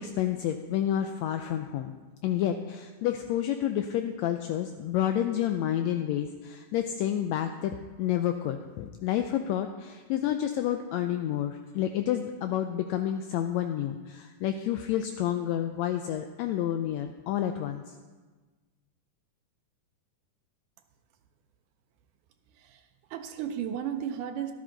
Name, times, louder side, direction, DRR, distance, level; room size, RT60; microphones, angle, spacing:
voice 1, 0.0-1.9 2.2-17.8, left 11 dB, 85° left, 7 dB, 1.6 m, -29 dB
voice 2, 22.5-24.5, right 9 dB, 80° right, 6 dB, 2.2 m, -35 dB
12.0 x 12.0 x 3.9 m, 1.3 s
omnidirectional pair, 3.7 m